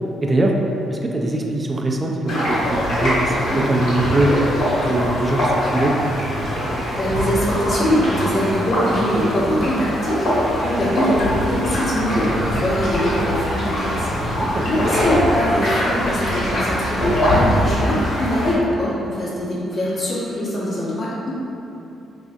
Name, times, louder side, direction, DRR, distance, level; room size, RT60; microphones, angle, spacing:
voice 1, 0.2-0.5 0.9-4.5 4.8-6.0 14.4-14.7, right 1 dB, 30° right, 1 dB, 0.4 m, -21 dB
sound 1, 2.3-18.5, equal, 70° left, 1.1 m, -22 dB
sound 2, 3.8-16.6, equal, 85° left, 1.1 m, -38 dB
voice 2, 7.0-21.3, equal, 45° left, -7 dB, 0.9 m, -23 dB
3.2 x 2.5 x 2.3 m, 2.8 s
hypercardioid pair, 45°, 0 cm